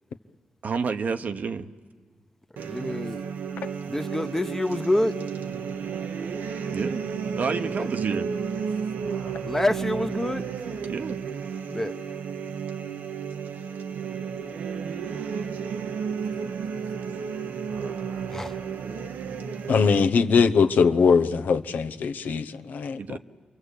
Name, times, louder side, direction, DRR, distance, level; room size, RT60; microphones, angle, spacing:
voice 1, 0.6-1.7 6.7-7.0 7.4-8.3 10.9-11.2 23.0-23.2, right 5 dB, 65° right, 1.0 m, -29 dB
voice 2, 2.6-3.2 3.9-5.1 7.6-7.9 9.4-10.4 11.7-11.9 18.3-18.5, left 1 dB, 10° left, 1.0 m, -27 dB
sound 1, 2.6-20.0, right 6 dB, 90° right, 1.0 m, -32 dB
voice 3, 19.7-23.2, left 5 dB, 80° left, 0.9 m, -21 dB
29.5 x 23.5 x 8.3 m
supercardioid pair, 50°, 3 cm